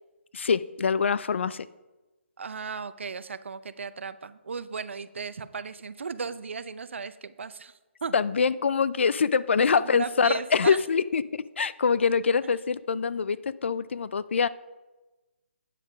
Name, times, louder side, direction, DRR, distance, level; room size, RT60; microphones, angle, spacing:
voice 1, 0.3-1.7 8.1-14.5, left 5 dB, 70° left, 17 dB, 0.4 m, -24 dB
voice 2, 2.4-7.7 8.0-8.2 9.8-10.8, right 5 dB, 70° right, 15 dB, 0.6 m, -36 dB
9.1 x 7.4 x 5.0 m, 1.1 s
hypercardioid pair, 160°, 7 cm